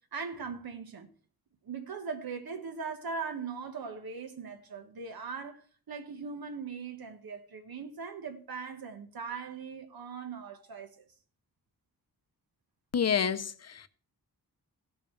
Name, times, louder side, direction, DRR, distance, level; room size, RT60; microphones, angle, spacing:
voice 1, 0.1-1.1 1.6-11.0, right 5 dB, 80° right, 1.3 m, -40 dB
voice 2, 12.9-13.9, left 7 dB, 45° left, 0.6 m, -29 dB
17.0 x 7.0 x 3.2 m
wide cardioid pair, 155°, 36 cm